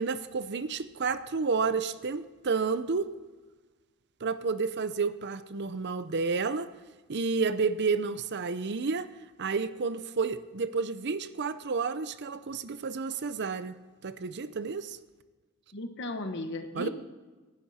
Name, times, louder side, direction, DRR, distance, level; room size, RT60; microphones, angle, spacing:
voice 1, 0.0-3.1 4.2-6.7 7.1-9.1 9.4-13.7 14.0-15.0 16.7-16.9, right 4 dB, 50° right, 13 dB, 0.6 m, -30 dB
voice 2, 15.7-16.9, left 2 dB, 55° left, 7 dB, 1.3 m, -35 dB
18.0 x 11.5 x 4.3 m, 1.3 s
head